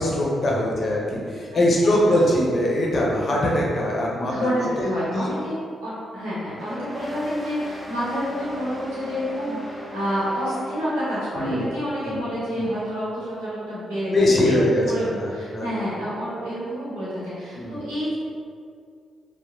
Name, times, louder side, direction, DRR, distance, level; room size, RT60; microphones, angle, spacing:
voice 1, 0.0-4.9 5.1-5.3 11.4-11.7 12.0-12.2 12.5-12.6 14.1-14.8 15.2-15.7 17.5-17.8, left 1 dB, 50° left, -3 dB, 0.6 m, -22 dB
voice 2, 4.3-18.1, equal, 85° right, -10 dB, 0.9 m, -29 dB
sound 1, 6.5-11.6, equal, ahead, 0.5 m, -37 dB
2.8 x 2.0 x 2.5 m, 2.2 s
hypercardioid pair, 40°, 0 cm